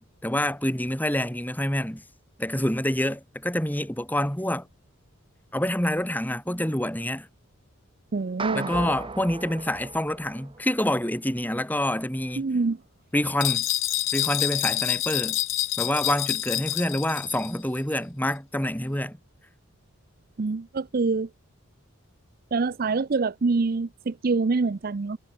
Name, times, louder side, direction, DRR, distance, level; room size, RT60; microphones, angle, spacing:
voice 1, 0.0-2.0 2.4-4.7 5.5-7.3 8.5-12.5 13.1-13.7 14.1-15.4 15.8-19.2, left 1 dB, 10° left, 2.9 m, -27 dB
voice 2, 8.1-8.7 12.4-12.8 20.4-21.3 22.5-25.2, right 4 dB, 45° right, 0.5 m, -25 dB
sound 1, 8.4-10.9, right 3 dB, 25° right, 1.1 m, -36 dB
sound 2, 13.4-17.5, left 16 dB, 65° left, 1.0 m, -27 dB
head